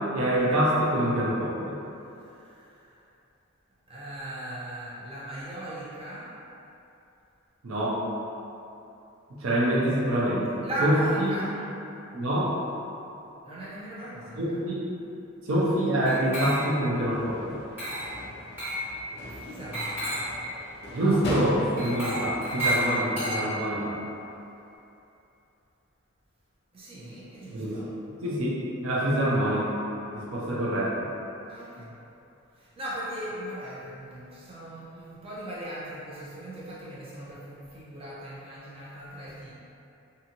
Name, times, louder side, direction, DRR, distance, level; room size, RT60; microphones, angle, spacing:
voice 1, 0.0-1.7 7.6-8.0 9.3-11.4 12.1-12.5 14.4-14.9 15.5-17.6 20.9-24.0 27.5-27.8 28.2-28.6 28.8-29.8 30.1-31.1, right 1 dB, 80° right, -6 dB, 0.6 m, -26 dB
voice 2, 2.2-2.7 3.9-6.3 9.5-9.8 10.6-11.6 13.4-14.6 19.2-20.3 20.9-21.3 26.7-27.9 31.5-31.9 32.6-39.5, right 1 dB, 30° right, -8 dB, 0.6 m, -38 dB
Glass, 16.1-16.9 17.8-18.2 18.6-18.9 19.7-20.4 21.8-23.8, equal, 10° right, 1.3 m, -31 dB
sound 1, 17.0-22.9, left 1 dB, 55° left, 0.5 m, -39 dB
2.7 x 2.6 x 2.8 m, 2.8 s
head